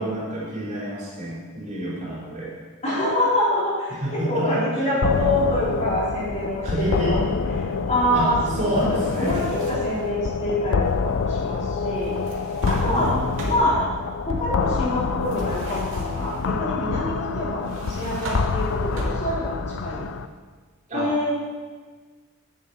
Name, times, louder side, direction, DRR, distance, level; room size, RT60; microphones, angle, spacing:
voice 1, 0.0-2.5 3.9-4.9 6.6-7.2 8.1-9.4 12.7-13.5 20.9-21.1, right 1 dB, 35° right, -7 dB, 3.9 m, -28 dB
voice 2, 2.8-7.2 7.6-8.7 9.2-12.1 12.7-13.1 13.4-13.8 14.2-20.1 20.9-21.3, left 1 dB, 30° left, -8 dB, 3.9 m, -25 dB
sound 1, 5.0-20.3, left 5 dB, 60° left, 0.5 m, -27 dB
sound 2, 8.7-10.0 12.0-13.9 15.3-16.4 17.6-19.6, right 1 dB, 60° right, 2.3 m, -36 dB
11.0 x 9.8 x 4.2 m, 1.4 s
head